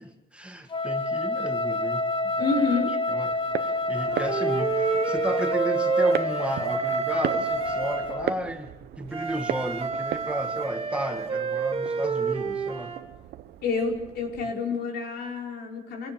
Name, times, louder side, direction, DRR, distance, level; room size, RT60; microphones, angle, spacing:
voice 1, 0.0-13.0, right 1 dB, 5° right, 4 dB, 2.0 m, -34 dB
Wind instrument woodwind instrument, 0.7-8.3, left 2 dB, 30° left, 1.8 m, -29 dB
voice 2, 2.4-2.9 13.6-16.1, left 4 dB, 70° left, 1 dB, 5.1 m, -28 dB
sound 1, 3.2-14.5, right 12 dB, 70° right, 1.0 m, -38 dB
Wind instrument woodwind instrument 2, 3.9-8.1 9.1-13.0, right 5 dB, 35° right, 2.9 m, -28 dB
26.0 x 17.5 x 7.1 m, 0.88 s
cardioid pair, 110°, 17 cm